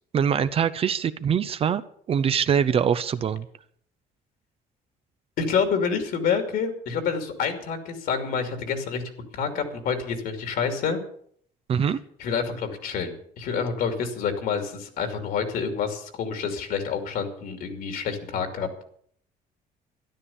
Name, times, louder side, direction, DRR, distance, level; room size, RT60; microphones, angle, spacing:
voice 1, 0.1-1.8 2.1-3.5 11.7-12.0, right 7 dB, 35° right, 13 dB, 0.6 m, -23 dB
voice 2, 5.4-9.0 9.3-11.0 12.2-18.7, left 6 dB, 65° left, 6 dB, 2.7 m, -28 dB
13.0 x 11.5 x 7.1 m, 0.62 s
cardioid pair, 160°, 16 cm